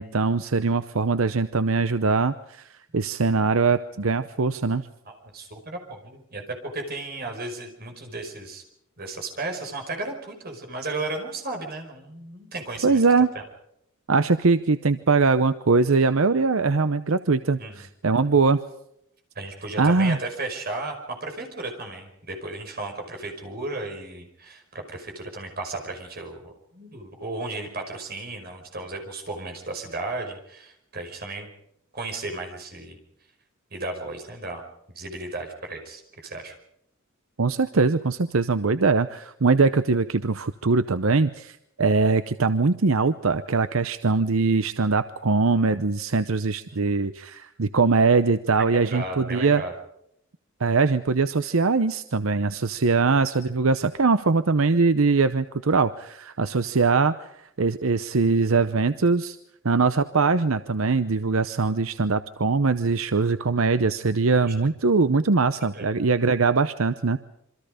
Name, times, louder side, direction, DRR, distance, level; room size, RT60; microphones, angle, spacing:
voice 1, 0.0-4.9 12.8-13.3 14.1-18.6 19.8-20.2 37.4-49.6 50.6-59.4 59.6-67.2, right 4 dB, 80° right, 12 dB, 0.8 m, -22 dB
voice 2, 5.1-8.6 9.0-13.0 13.4-13.5 17.6-17.7 19.4-31.5 31.9-33.0 33.7-34.6 35.0-36.5 48.8-49.7 64.5-64.6 65.7-65.9, right 2 dB, 45° right, 4 dB, 5.3 m, -34 dB
27.5 x 24.5 x 5.1 m, 0.74 s
head